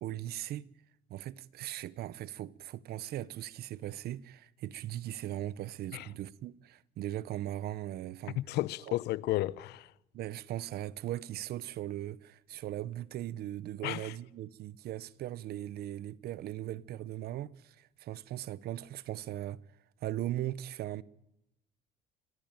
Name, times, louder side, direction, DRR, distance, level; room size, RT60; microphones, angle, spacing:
voice 1, 0.0-0.7 1.1-8.4 8.9-9.0 10.1-19.6 20.0-21.0, right 13 dB, 70° right, 0.8 m, -39 dB
voice 2, 8.4-9.9 13.8-14.1, left 16 dB, 80° left, 0.7 m, -33 dB
25.5 x 15.5 x 9.0 m
cardioid pair, 110°, 17 cm